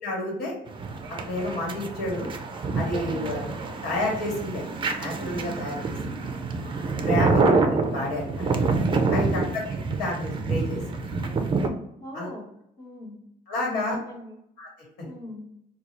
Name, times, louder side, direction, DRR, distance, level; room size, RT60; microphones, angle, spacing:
voice 1, 0.0-0.5 1.2-2.3 2.7-3.5 3.8-4.6 5.0-5.8 7.1-7.6 7.9-8.5 9.1-9.6 9.9-10.8 12.1-12.3 13.5-14.0 14.6-14.7 15.0-15.1, left 1 dB, 80° left, -2 dB, 1.4 m, -29 dB
sound 1, 0.7-11.7, right 3 dB, 30° right, 0.5 m, -27 dB
voice 2, 9.1-9.6 12.0-12.5 12.8-13.2 13.7-14.4 15.1-15.5, left 1 dB, 25° left, -5 dB, 1.0 m, -39 dB
3.8 x 2.3 x 3.0 m, 0.77 s
cardioid pair, 110°, 17 cm